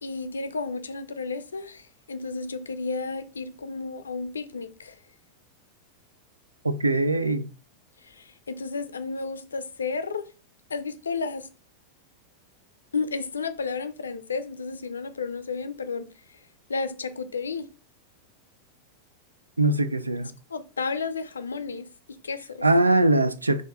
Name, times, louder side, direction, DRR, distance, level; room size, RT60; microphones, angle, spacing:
voice 1, 0.0-4.9 8.0-10.3 10.7-11.5 12.9-16.1 16.7-17.7 20.5-21.9 22.2-22.6, left 4 dB, 70° left, 0.5 m, -32 dB
voice 2, 6.6-7.5 19.6-20.3 22.6-23.6, right 2 dB, 80° right, 0.4 m, -22 dB
4.4 x 2.8 x 4.3 m
figure-of-eight pair, 90°, 0 cm